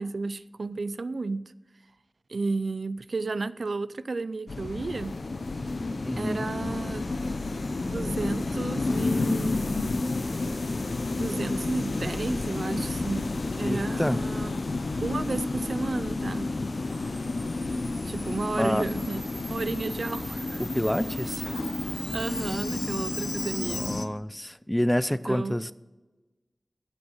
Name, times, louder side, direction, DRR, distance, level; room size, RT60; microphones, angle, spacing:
voice 1, 0.0-1.4 2.3-5.1 6.2-7.1 7.9-9.6 11.2-14.5 15.0-16.5 18.0-19.2 19.5-20.6 22.1-24.0 25.3-25.6, right 3 dB, 75° right, 16 dB, 0.4 m, -32 dB
sound 1, 4.5-24.1, left 3 dB, 70° left, 0.8 m, -31 dB
voice 2, 6.0-6.5 13.6-14.2 18.6-18.8 20.6-21.5 23.7-25.7, equal, 10° left, 16 dB, 0.4 m, -28 dB
Camera, 16.9-23.9, right 2 dB, 45° right, 1.8 m, -42 dB
15.5 x 6.2 x 6.4 m, 1.2 s
wide cardioid pair, 65°, 0 cm